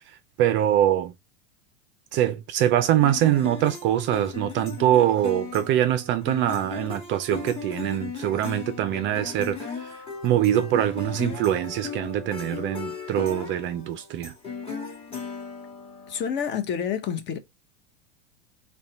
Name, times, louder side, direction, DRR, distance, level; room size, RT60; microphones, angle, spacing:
voice 1, 0.4-1.1 2.1-9.6 10.2-14.3, right 11 dB, 35° right, 0.4 m, -23 dB
sound 1, 3.0-16.2, left 6 dB, 15° left, 1.8 m, -37 dB
voice 2, 16.1-17.4, left 8 dB, 35° left, 0.8 m, -28 dB
4.0 x 2.2 x 3.7 m
hypercardioid pair, 110°, 33 cm